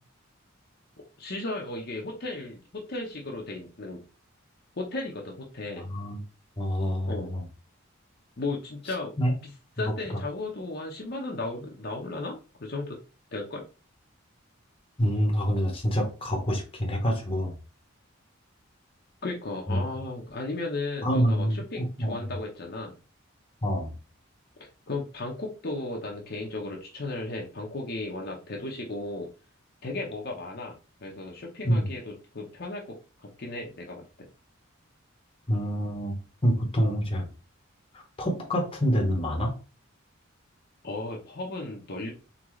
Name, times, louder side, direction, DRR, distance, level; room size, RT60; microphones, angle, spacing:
voice 1, 1.2-4.0 4.8-5.9 7.1-7.3 8.4-9.1 9.4-9.5 9.8-13.0 13.3-13.6 19.2-23.0 24.6-29.3 29.8-34.0 40.8-42.1, left 2 dB, 50° left, 0 dB, 0.9 m, -35 dB
voice 2, 6.6-7.4 9.2-9.3 9.8-9.9 15.0-17.6 19.7-19.8 21.0-22.2 23.6-23.9 31.6-31.9 35.5-36.2 36.4-37.3 37.9-39.5, equal, 25° left, 2 dB, 1.0 m, -26 dB
3.9 x 3.7 x 3.1 m, 0.33 s
head